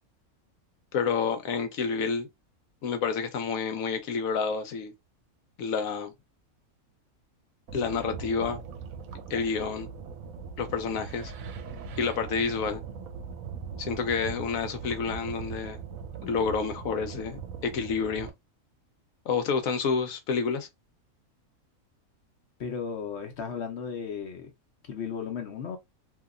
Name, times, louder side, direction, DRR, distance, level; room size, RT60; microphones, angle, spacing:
voice 1, 0.9-2.3 2.8-4.9 5.6-6.1 7.7-8.6 9.3-9.9 10.6-11.3 12.0-12.8 13.7-15.8 16.2-18.3 19.3-20.7, left 5 dB, 75° left, 1.1 m, -29 dB
sound 1, 7.7-18.3, right 6 dB, 70° right, 1.0 m, -40 dB
voice 2, 22.6-24.5 24.8-25.8, left 6 dB, 55° left, 0.9 m, -35 dB
2.8 x 2.7 x 2.4 m
omnidirectional pair, 1.5 m